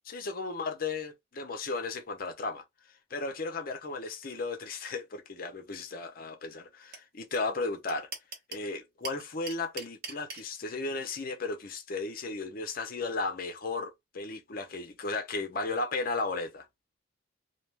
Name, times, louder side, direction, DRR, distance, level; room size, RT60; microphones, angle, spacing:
voice 1, 0.1-2.6 3.1-8.1 8.5-16.7, left 3 dB, 45° left, 0.6 m, -35 dB
sound 1, 6.9-7.0 7.3-7.4 7.6-8.6 9.0-10.4, right 4 dB, 50° right, 0.9 m, -39 dB
2.2 x 2.2 x 3.2 m
head